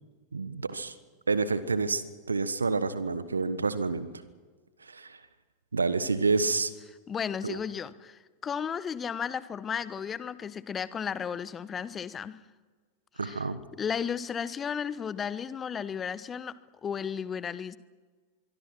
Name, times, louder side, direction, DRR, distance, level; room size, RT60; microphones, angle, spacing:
voice 1, 0.3-0.9 1.3-2.0 2.3-4.1 4.8-5.2 5.7-6.7 7.4-7.6 13.2-13.6, right 4 dB, 75° right, 14 dB, 1.3 m, -28 dB
voice 2, 7.1-12.3 13.2-13.4 13.8-16.5 16.8-17.8, left 7 dB, 20° left, 16 dB, 1.1 m, -34 dB
25.0 x 23.5 x 6.1 m, 1.4 s
figure-of-eight pair, 90°, 0 cm